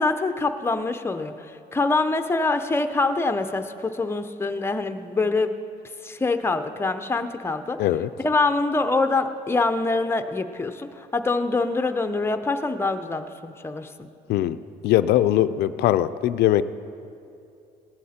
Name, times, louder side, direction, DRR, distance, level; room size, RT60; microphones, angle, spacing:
voice 1, 0.0-5.5 6.0-7.8 8.2-14.1, left 3 dB, 15° left, 7 dB, 0.7 m, -25 dB
voice 2, 7.8-8.1 14.3-14.6 14.8-16.6, left 13 dB, 75° left, 13 dB, 0.5 m, -20 dB
18.0 x 11.5 x 4.3 m, 2.6 s
cardioid pair, 110°, 17 cm